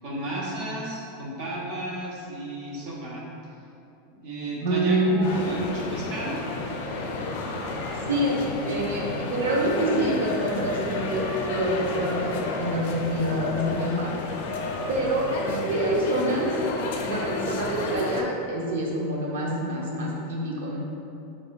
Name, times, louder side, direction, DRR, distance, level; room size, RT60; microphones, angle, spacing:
voice 1, 0.0-3.2 4.1-6.4, right 1 dB, 60° right, -5 dB, 1.0 m, -33 dB
voice 2, 4.5-5.5 8.1-14.1 14.9-16.5 17.0-20.8, right 1 dB, 90° right, -2 dB, 0.7 m, -26 dB
sound 1, 5.2-18.2, left 2 dB, 75° left, 0.4 m, -31 dB
4.0 x 3.7 x 2.3 m, 2.7 s
supercardioid pair, 145°, 0 cm